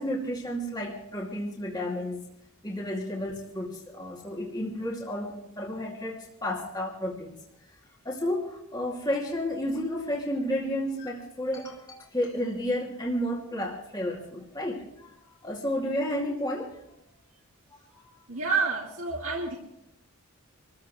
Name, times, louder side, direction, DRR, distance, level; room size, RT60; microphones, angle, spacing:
voice 1, 0.0-2.2 2.6-7.3 8.0-17.0 17.9-18.2, left 1 dB, 20° left, -3 dB, 2.4 m, -32 dB
voice 2, 18.3-19.6, right 4 dB, 70° right, -3 dB, 2.3 m, -28 dB
26.0 x 15.0 x 3.2 m, 0.79 s
head